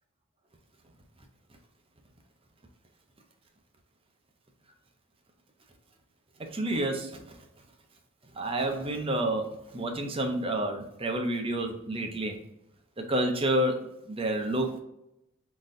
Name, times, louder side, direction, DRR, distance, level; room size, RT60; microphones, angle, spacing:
voice 1, 6.4-7.2 8.3-12.4 13.0-13.8 14.1-14.8, right 1 dB, 25° right, 4 dB, 0.6 m, -29 dB
4.0 x 3.8 x 2.5 m, 0.84 s
head